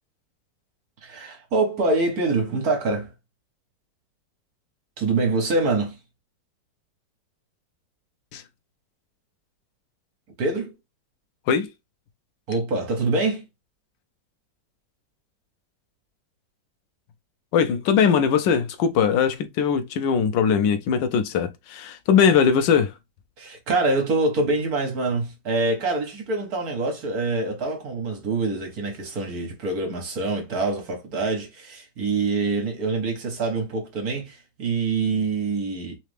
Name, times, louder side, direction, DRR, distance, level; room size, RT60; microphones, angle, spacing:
voice 1, 1.0-3.1 5.0-6.0 10.4-10.7 12.5-13.4 23.4-36.0, right 3 dB, 55° right, 1.7 m, -25 dB
voice 2, 17.5-22.9, left 7 dB, 85° left, 1.3 m, -20 dB
3.9 x 3.3 x 3.4 m
omnidirectional pair, 1.9 m